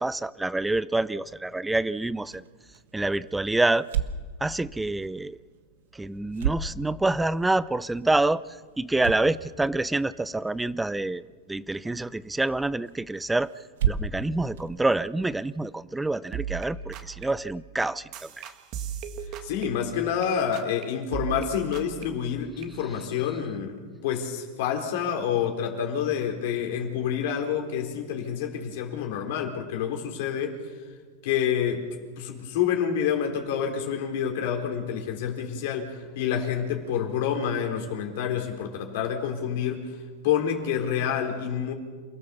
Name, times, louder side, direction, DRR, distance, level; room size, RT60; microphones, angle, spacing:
voice 1, 0.0-2.4 2.9-3.9 4.4-5.4 5.9-8.4 8.8-11.2 11.5-13.5 13.9-18.1, right 2 dB, 5° right, 18 dB, 0.5 m, -27 dB
sound 1, 2.1-15.7, right 8 dB, 85° right, 1.4 m, -36 dB
sound 2, 16.0-16.1 16.3-20.3 20.5-20.8 21.1-22.7, right 8 dB, 45° right, 1.8 m, -37 dB
voice 2, 19.4-30.6 31.2-31.8 32.2-40.0 40.2-41.7, left 8 dB, 65° left, 3 dB, 3.9 m, -28 dB
28.5 x 16.0 x 7.1 m, 1.5 s
supercardioid pair, 140°, 0 cm